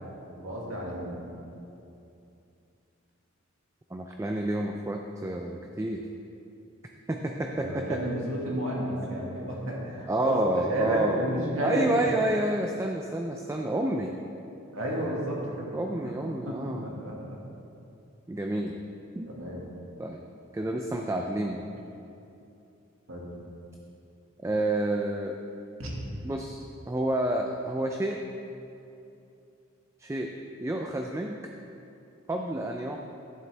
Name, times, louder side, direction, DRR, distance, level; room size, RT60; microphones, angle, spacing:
voice 1, 0.4-1.2 7.5-12.0 14.7-15.7 16.0-16.1 16.5-17.4 19.3-19.6 23.1-23.3 25.8-25.9, equal, 80° right, -3 dB, 1.9 m, -32 dB
voice 2, 3.9-6.0 7.1-8.0 10.1-11.2 11.6-14.2 15.7-16.8 18.3-18.8 19.1-19.3 20.0-20.2 20.5-21.7 24.4-25.4 26.2-26.6 26.9-28.2 30.0-30.3 30.6-31.4 32.3-33.0, right 1 dB, 15° right, 2 dB, 0.3 m, -29 dB
11.5 x 7.3 x 3.4 m, 2.7 s
head